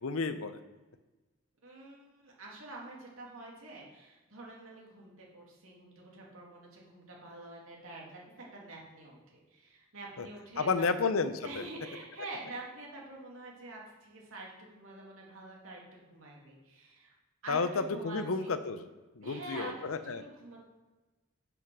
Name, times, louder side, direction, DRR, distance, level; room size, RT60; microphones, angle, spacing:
voice 1, 0.0-0.6 10.2-10.3 10.6-11.6 17.5-18.9 19.2-20.2, left 4 dB, 90° left, 11 dB, 0.6 m, -31 dB
voice 2, 1.6-10.7 11.4-17.1 17.4-18.5 19.2-20.6, right 2 dB, 85° right, -2 dB, 2.5 m, -47 dB
7.2 x 6.0 x 6.1 m, 1.2 s
head